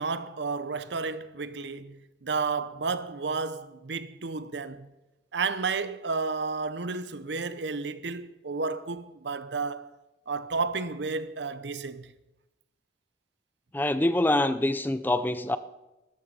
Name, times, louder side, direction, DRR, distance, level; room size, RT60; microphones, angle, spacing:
voice 1, 0.0-4.9 5.3-9.9 10.3-12.1, right 4 dB, 80° right, 0.8 m, -32 dB
voice 2, 13.7-15.6, left 1 dB, 10° left, 0.4 m, -25 dB
13.5 x 11.5 x 5.5 m
head